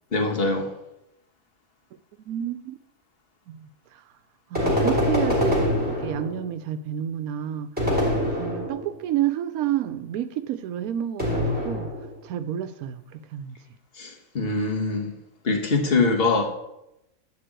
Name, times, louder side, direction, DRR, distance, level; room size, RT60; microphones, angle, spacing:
voice 1, 0.1-0.7 14.0-15.1 15.4-16.5, left 3 dB, 45° left, 2 dB, 1.6 m, -23 dB
voice 2, 2.2-2.8 3.5-4.0 4.5-8.1 8.4-11.9 12.2-13.6, right 11 dB, 90° right, 11 dB, 1.1 m, -30 dB
sound 1, 4.5-6.5 7.8-9.0 11.2-12.2, left 1 dB, 5° right, 3.0 m, -24 dB
11.0 x 3.8 x 7.6 m, 0.85 s
omnidirectional pair, 1.5 m